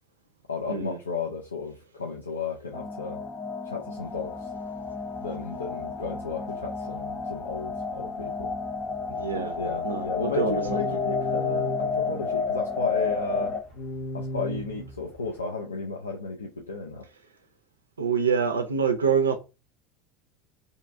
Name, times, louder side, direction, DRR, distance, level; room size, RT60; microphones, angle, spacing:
voice 1, 0.5-3.2 3.7-4.5 5.2-8.5 9.6-13.5 14.1-17.1, left 4 dB, 85° left, 0.4 m, -34 dB
sound 1, 2.7-13.6, left 5 dB, 25° left, 0.4 m, -31 dB
sound 2, 4.0-15.5, left 1 dB, 50° left, 0.9 m, -40 dB
voice 2, 9.1-9.6 9.8-11.0 18.0-19.4, right 6 dB, 85° right, 0.3 m, -26 dB
2.7 x 2.3 x 2.5 m
figure-of-eight pair, 75°, 0 cm